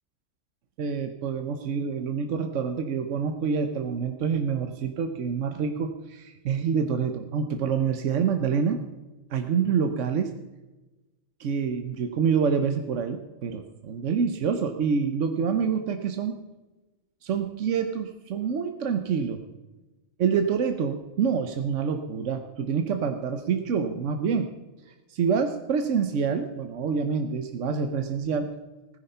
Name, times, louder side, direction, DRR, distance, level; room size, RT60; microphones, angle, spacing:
voice 1, 0.8-8.8 9.3-10.3 11.4-16.3 17.2-19.4 20.2-24.5 25.1-28.5, right 6 dB, 85° right, 7 dB, 1.2 m, -27 dB
16.0 x 9.9 x 5.5 m, 1.1 s
omnidirectional pair, 1.2 m